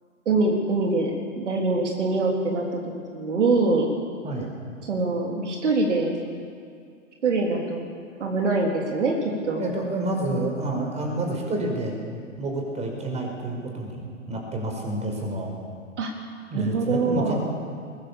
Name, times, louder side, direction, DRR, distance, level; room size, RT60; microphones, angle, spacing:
voice 1, 0.3-3.9 4.9-6.2 7.2-7.9 8.2-9.6 16.0-16.1 16.5-17.4, right 3 dB, 65° right, 0 dB, 3.7 m, -24 dB
voice 2, 9.6-12.0 12.4-15.5 16.5-17.4, right 2 dB, 15° right, 1 dB, 5.2 m, -29 dB
21.5 x 19.0 x 7.3 m, 2.2 s
figure-of-eight pair, 110°, 39 cm